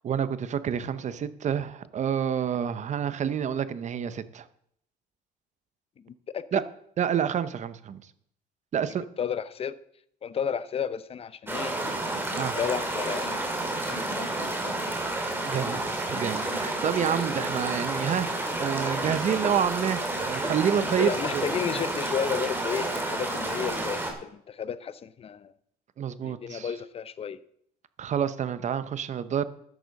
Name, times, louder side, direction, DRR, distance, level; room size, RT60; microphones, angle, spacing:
voice 1, 0.0-4.4 6.5-6.6 7.0-8.0 8.7-9.0 12.4-12.6 15.4-18.3 18.6-21.5 26.0-26.7 28.0-29.4, right 8 dB, 45° right, 13 dB, 0.8 m, -28 dB
voice 2, 6.0-6.6 9.2-9.8 10.2-11.8 12.5-13.5 13.8-14.8 21.0-25.5 26.2-27.4, left 7 dB, 35° left, 16 dB, 0.6 m, -33 dB
sound 1, 11.5-24.1, right 2 dB, 15° right, 2.5 m, -30 dB
13.0 x 10.0 x 4.1 m, 0.70 s
cardioid pair, 110°, 17 cm